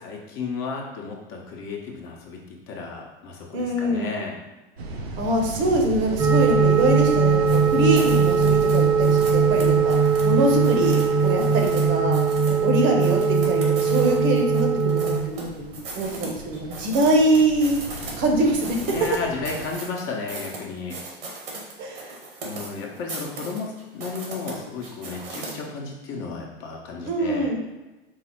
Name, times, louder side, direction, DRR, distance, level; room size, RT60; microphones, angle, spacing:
voice 1, 0.0-4.4 12.4-12.6 18.9-21.0 22.4-27.5, left 4 dB, 45° left, -1 dB, 0.9 m, -33 dB
voice 2, 3.5-4.1 5.2-9.9 10.2-12.2 12.6-17.8 18.2-18.9 21.8-22.2 27.0-27.6, right 1 dB, 40° right, 2 dB, 0.9 m, -23 dB
sound 1, 4.8-19.7, right 2 dB, 85° right, 0.7 m, -37 dB
sound 2, 6.2-15.2, right 5 dB, 10° right, 0.4 m, -20 dB
sound 3, 7.5-11.8 12.1-12.6 13.0-15.4 15.7-18.1 18.4-25.5, right 3 dB, 70° right, 1.4 m, -38 dB
4.7 x 2.0 x 4.5 m, 1.1 s
hypercardioid pair, 105°, 30 cm